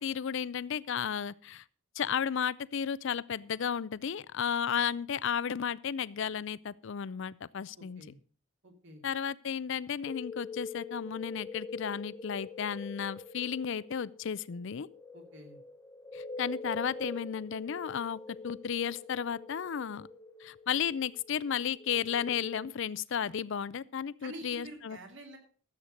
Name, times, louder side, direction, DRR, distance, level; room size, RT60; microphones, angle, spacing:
voice 1, 0.0-1.6 2.0-8.0 9.0-14.9 16.1-18.2 18.4-20.1 20.4-25.0, left 7 dB, 55° left, 0.4 m, -33 dB
voice 2, 7.8-8.2 8.6-9.0 15.1-15.6 24.2-25.4, right 1 dB, 55° right, 2.7 m, -47 dB
sound 1, 10.1-22.6, left 3 dB, 15° left, 0.9 m, -44 dB
13.5 x 8.0 x 5.2 m
head